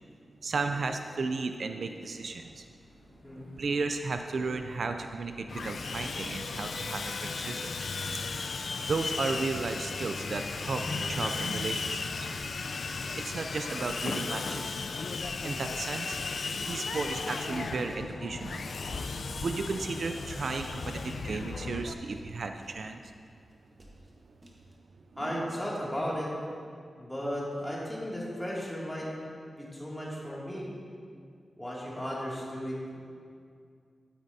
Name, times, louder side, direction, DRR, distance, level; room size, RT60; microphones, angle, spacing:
voice 1, 0.4-2.7 3.6-7.7 8.9-12.1 13.2-14.8 15.4-16.2 16.6-18.7 19.4-23.1 25.2-25.5, right 4 dB, 65° right, 6 dB, 0.4 m, -34 dB
sound 1, 1.8-14.6, left 2 dB, 45° left, 1.2 m, -49 dB
Sawing, 5.5-21.9, left 4 dB, 65° left, 0.4 m, -35 dB
sound 2, 12.4-13.5 13.8-22.8 23.3-23.4 23.5-23.6 23.8-24.1 24.4-24.7, right 1 dB, 35° right, 1.3 m, -51 dB
voice 2, 25.2-26.3 27.0-29.1 29.6-30.7 31.6-33.0, equal, 10° left, -6 dB, 2.4 m, -35 dB
12.0 x 9.3 x 2.7 m, 2.3 s
wide cardioid pair, 95°, 0 cm